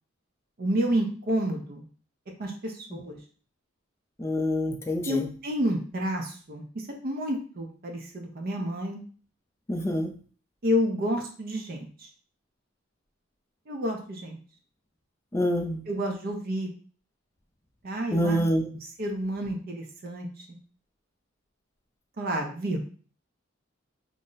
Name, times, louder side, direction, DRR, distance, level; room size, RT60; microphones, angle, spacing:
voice 1, 0.6-1.9 2.4-3.2 5.0-9.0 10.6-12.1 13.7-14.4 15.9-16.7 17.8-18.4 19.0-20.3 22.2-22.8, equal, 45° right, 2 dB, 0.5 m, -30 dB
voice 2, 4.2-5.3 9.7-10.1 15.3-15.8 18.1-18.7, equal, 15° left, 4 dB, 0.3 m, -26 dB
2.5 x 2.0 x 3.7 m, 0.42 s
head